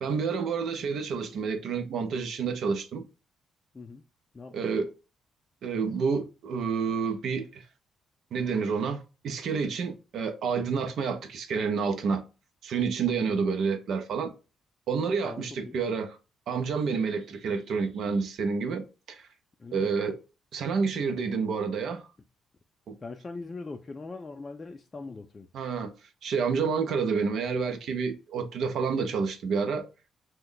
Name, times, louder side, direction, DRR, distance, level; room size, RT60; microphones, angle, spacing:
voice 1, 0.0-3.0 4.5-4.9 5.6-7.6 8.3-12.2 12.6-14.3 14.9-16.2 16.5-19.3 19.7-20.2 20.5-22.1 22.9-23.0 25.5-25.9 26.2-29.9, right 5 dB, 70° right, 0.6 m, -29 dB
voice 2, 4.3-4.9 13.3-13.5 15.2-15.8 19.6-19.9 23.0-25.5, left 3 dB, 30° left, 0.3 m, -41 dB
3.0 x 2.2 x 3.8 m
cardioid pair, 90°, 0 cm